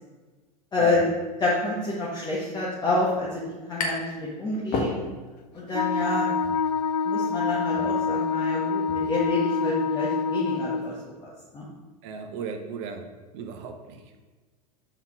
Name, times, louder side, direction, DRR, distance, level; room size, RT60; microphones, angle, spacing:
voice 1, 0.7-1.1 1.4-5.0 5.5-6.4 7.0-11.7, left 2 dB, 20° left, -6 dB, 1.5 m, -28 dB
sound 1, 3.8-4.2 4.5-5.4, left 3 dB, 40° left, 1.5 m, -30 dB
Wind instrument woodwind instrument, 5.7-10.9, left 5 dB, 80° left, 0.4 m, -26 dB
voice 2, 12.0-13.1 13.3-14.0, right 6 dB, 50° right, 5 dB, 1.1 m, -36 dB
5.7 x 4.9 x 5.9 m, 1.3 s
figure-of-eight pair, 85°, 21 cm